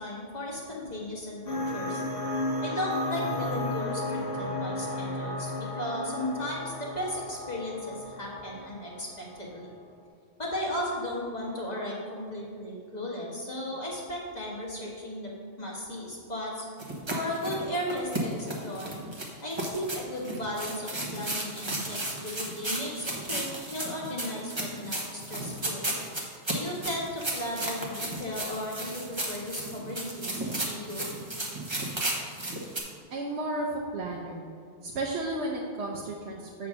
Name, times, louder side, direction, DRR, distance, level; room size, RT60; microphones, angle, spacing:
voice 1, 0.0-2.0 2.6-9.7 10.4-16.7 17.1-18.9 19.4-25.9 26.5-31.2, left 1 dB, 40° left, -4 dB, 1.6 m, -35 dB
sound 1, 1.5-9.7, left 1 dB, 55° left, 1.6 m, -34 dB
sound 2, 16.8-32.8, right 1 dB, 25° right, 1.1 m, -34 dB
voice 2, 33.1-34.5 34.8-36.7, right 2 dB, 75° right, -2 dB, 1.0 m, -33 dB
7.8 x 3.9 x 6.2 m, 2.2 s
omnidirectional pair, 1.1 m